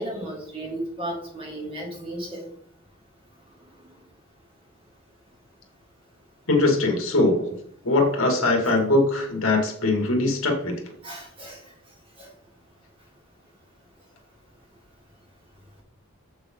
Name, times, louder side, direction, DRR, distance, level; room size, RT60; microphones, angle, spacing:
voice 1, 0.0-2.4 8.6-8.7 11.0-11.6 12.2-12.3, right 1 dB, 25° right, -2 dB, 3.0 m, -34 dB
voice 2, 6.5-7.5 7.8-10.7, left 2 dB, 65° left, 2 dB, 2.6 m, -21 dB
9.0 x 7.8 x 4.0 m, 0.66 s
head